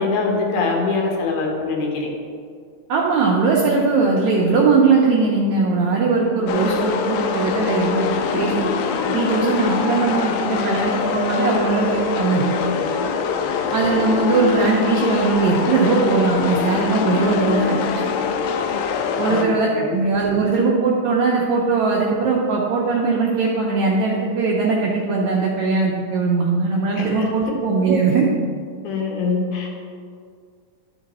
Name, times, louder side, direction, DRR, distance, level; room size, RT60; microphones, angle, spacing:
voice 1, 0.0-2.1 13.4-13.5 19.1-20.0 27.0-27.1 28.8-29.7, left 4 dB, 65° left, 0 dB, 2.2 m, -23 dB
voice 2, 2.9-8.7 9.1-12.4 13.7-18.0 19.2-28.3, right 4 dB, 85° right, -3 dB, 1.6 m, -20 dB
sound 1, 6.5-19.5, left 6 dB, 80° left, 2.3 m, -23 dB
12.0 x 5.0 x 4.1 m, 2.2 s
omnidirectional pair, 4.2 m